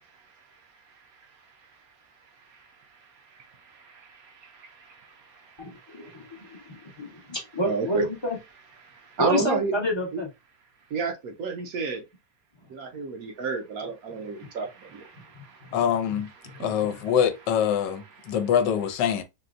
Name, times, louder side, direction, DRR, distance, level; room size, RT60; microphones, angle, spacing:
voice 1, 3.1-7.3 7.6-8.1 8.8-9.7 10.1-10.2 10.9-12.0 12.7-15.8 16.5-17.1 18.2-18.4, right 4 dB, 65° right, 1.0 m, -33 dB
voice 2, 5.6-6.1 6.5-8.4 9.2-10.3, left 1 dB, 25° left, 0.5 m, -28 dB
voice 3, 15.7-16.3 16.6-19.2, left 8 dB, 90° left, 1.2 m, -24 dB
4.1 x 2.2 x 2.5 m
omnidirectional pair, 1.9 m